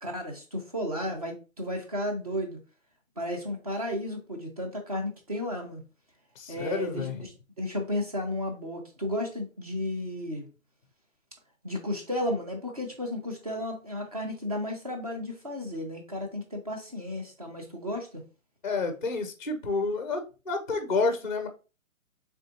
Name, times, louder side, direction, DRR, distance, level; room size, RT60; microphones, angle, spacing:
voice 1, 0.0-2.6 3.2-5.8 6.5-7.3 7.6-10.5 11.6-18.2, left 1 dB, 30° right, 3 dB, 0.6 m, -33 dB
voice 2, 6.4-7.1 18.6-21.5, left 3 dB, 40° left, 7 dB, 0.4 m, -29 dB
4.1 x 3.4 x 2.7 m, 0.32 s
hypercardioid pair, 175°, 41 cm